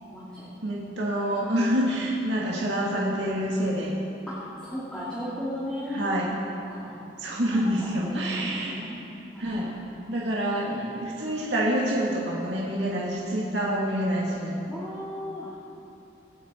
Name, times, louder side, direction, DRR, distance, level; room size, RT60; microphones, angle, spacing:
voice 1, 0.1-0.4 4.3-4.4 4.6-7.1 8.0-9.0 9.3-9.7 14.7-15.5, left 1 dB, 5° left, -11 dB, 2.8 m, -36 dB
voice 2, 0.6-3.9 5.9-6.3 7.2-8.8 9.4-9.7 10.1-14.6, equal, 80° right, -5 dB, 2.0 m, -27 dB
25.0 x 8.5 x 4.5 m, 2.9 s
head